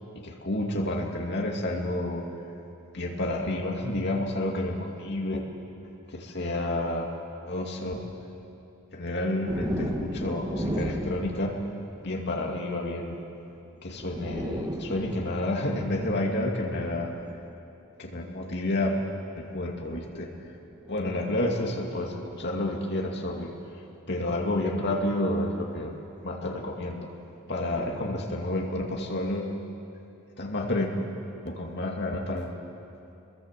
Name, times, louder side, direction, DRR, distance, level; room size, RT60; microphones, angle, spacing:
voice 1, 0.1-2.3 2.9-5.4 6.1-7.1 7.5-8.0 8.9-11.6 12.0-13.2 13.8-17.1 18.0-19.0 19.4-20.3 20.9-23.5 24.1-25.9 26.2-27.1 27.5-29.6 30.4-30.9 31.4-32.6, left 1 dB, 50° left, 0 dB, 2.5 m, -30 dB
sound 1, 9.5-12.2 13.5-13.6 13.9-17.5 18.4-18.6 19.8-22.7 24.2-24.4 26.1-26.8 27.6-29.1, equal, 20° right, 1.6 m, -37 dB
28.5 x 22.0 x 7.7 m, 2.8 s
head